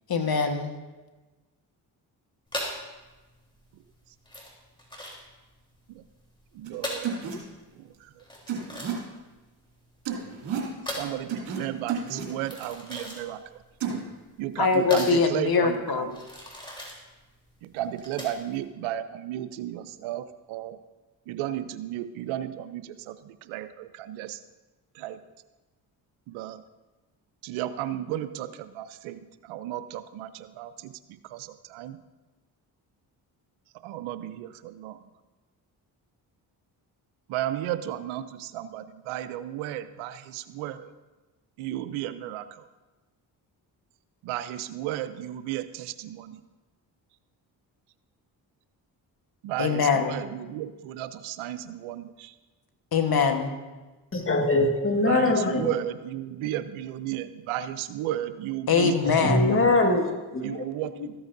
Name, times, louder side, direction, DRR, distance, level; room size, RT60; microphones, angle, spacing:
voice 1, 0.1-0.7 14.6-16.1 49.6-50.2 52.9-53.5 58.7-59.6, left 5 dB, 50° left, 6 dB, 1.2 m, -23 dB
sound 1, 2.5-18.6, equal, 10° left, 3.2 m, -39 dB
voice 2, 6.5-7.1 7.8-8.2 11.0-13.6 13.9-14.0 14.4-16.1 17.6-20.8 21.3-24.4 24.9-25.2 26.3-26.6 27.4-30.9 31.2-32.0 33.8-35.0 37.3-40.9 41.6-42.7 44.2-46.4 49.4-52.3 55.0-59.0 60.4-61.1, right 12 dB, 85° right, 13 dB, 0.5 m, -34 dB
sound 2, 6.6-6.7 7.0-7.3 8.5-8.9 10.0-10.7 11.3-11.6 11.9-12.3 13.8-14.0, right 8 dB, 65° right, 2.7 m, -31 dB
voice 3, 54.1-55.7 59.1-60.6, left 2 dB, 25° left, 3 dB, 1.6 m, -23 dB
14.0 x 7.9 x 2.6 m, 1.2 s
supercardioid pair, 45°, 47 cm